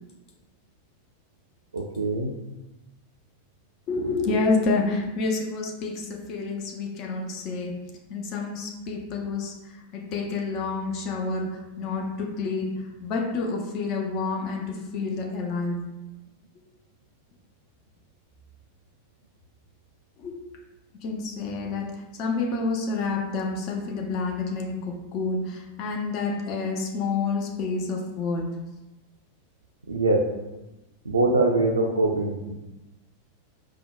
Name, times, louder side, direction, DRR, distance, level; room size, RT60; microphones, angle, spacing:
voice 1, 1.7-2.3 29.9-30.3 31.1-32.5, right 2 dB, 75° right, 2 dB, 0.4 m, -23 dB
voice 2, 3.9-7.8 8.1-15.8 20.2-20.4 21.0-21.9 22.2-28.5, left 3 dB, 40° left, 1 dB, 0.5 m, -29 dB
5.2 x 2.2 x 2.2 m, 1.0 s
figure-of-eight pair, 90°, 0 cm